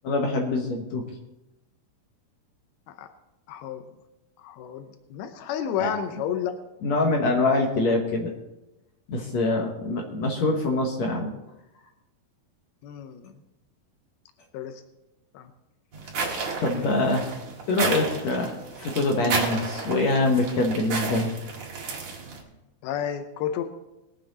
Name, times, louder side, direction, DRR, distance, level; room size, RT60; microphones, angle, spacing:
voice 1, 0.0-1.0 5.8-5.9 6.8-8.3 9.1-11.3 16.6-17.3 17.7-21.3, left 2 dB, 60° left, 2 dB, 1.9 m, -24 dB
voice 2, 3.5-3.9 4.4-6.5 12.8-13.3 14.5-14.8 15.3-15.5 16.8-16.9 22.8-23.6, left 9 dB, 85° left, 7 dB, 2.7 m, -31 dB
sound 1, 15.9-22.4, right 4 dB, 50° right, 2.8 m, -32 dB
21.5 x 7.6 x 4.0 m, 0.97 s
omnidirectional pair, 4.3 m